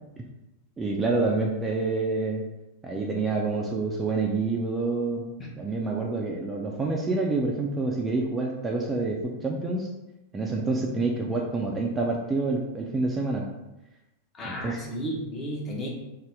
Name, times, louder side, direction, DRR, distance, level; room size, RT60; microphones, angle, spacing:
voice 1, 0.8-2.4 2.8-5.3 5.6-9.9 10.3-13.5 14.4-14.8, right 3 dB, 15° right, -1 dB, 0.3 m, -27 dB
voice 2, 14.4-16.0, equal, 25° left, -2 dB, 0.7 m, -33 dB
2.6 x 2.0 x 3.4 m, 0.99 s
figure-of-eight pair, 90°, 0 cm